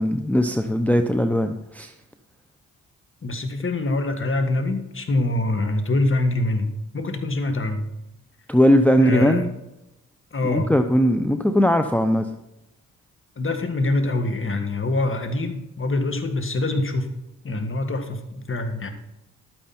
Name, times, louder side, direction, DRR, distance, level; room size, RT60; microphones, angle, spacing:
voice 1, 0.0-1.9 8.5-9.5 10.4-12.3, equal, 5° left, 6 dB, 0.7 m, -19 dB
voice 2, 3.2-7.9 9.0-9.5 10.3-10.7 13.4-17.1 17.4-18.9, left 2 dB, 40° left, 7 dB, 1.9 m, -25 dB
11.5 x 9.3 x 4.4 m, 0.90 s
cardioid pair, 65°, 33 cm